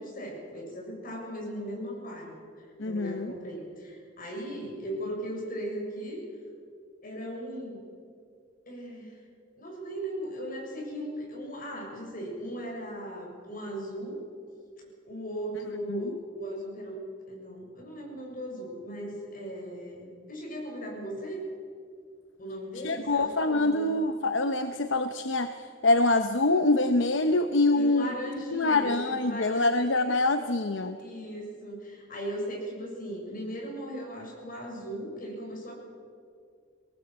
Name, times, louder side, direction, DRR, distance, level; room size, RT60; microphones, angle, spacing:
voice 1, 0.0-6.2 7.0-7.8 8.7-9.2 9.6-14.2 15.0-21.4 22.4-23.9 27.7-29.7 31.0-35.7, equal, 45° left, -1 dB, 7.0 m, -38 dB
voice 2, 2.8-3.3 15.9-16.0 22.8-28.1 28.5-31.0, left 2 dB, 70° left, 8 dB, 0.9 m, -25 dB
23.0 x 18.5 x 8.1 m, 2.2 s
head